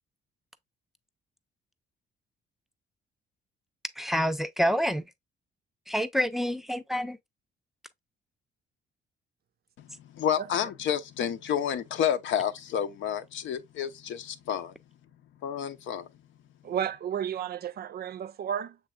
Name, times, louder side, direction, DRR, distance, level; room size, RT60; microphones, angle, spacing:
voice 1, 4.0-5.0 5.9-7.2, equal, ahead, 0.5 m, -27 dB
voice 2, 9.8-14.7 15.4-16.1, left 9 dB, 75° left, 0.7 m, -30 dB
voice 3, 16.6-18.8, right 9 dB, 50° right, 0.4 m, -32 dB
6.8 x 3.3 x 2.3 m
cardioid pair, 90°, 20 cm